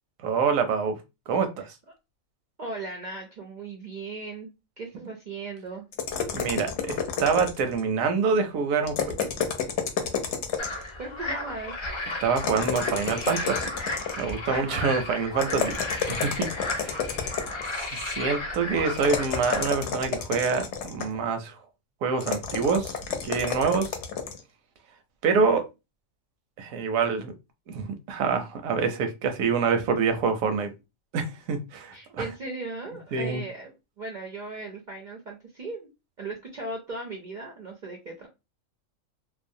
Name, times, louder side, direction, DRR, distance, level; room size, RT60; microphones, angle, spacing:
voice 1, 0.2-1.0 1.3-1.7 6.3-9.3 12.2-13.6 14.2-15.8 16.1-16.5 16.7-17.0 17.8-21.6 22.0-22.9 23.2-23.9 25.2-25.6 26.6-27.3 27.7-30.7 31.1-32.3 33.1-33.4, right 5 dB, 85° right, 7 dB, 1.0 m, -26 dB
voice 2, 2.6-5.9 11.0-11.8 14.5-14.8 31.9-33.7 34.0-35.9 36.2-38.3, right 3 dB, 60° right, 1 dB, 0.4 m, -37 dB
sound 1, 5.9-7.8 8.8-10.9 12.4-14.3 15.4-17.8 19.0-21.2 22.2-24.4, left 7 dB, 65° left, 0.8 m, -30 dB
sound 2, 10.6-19.6, left 2 dB, 50° left, 0.3 m, -34 dB
2.6 x 2.0 x 2.6 m, 0.25 s
omnidirectional pair, 1.4 m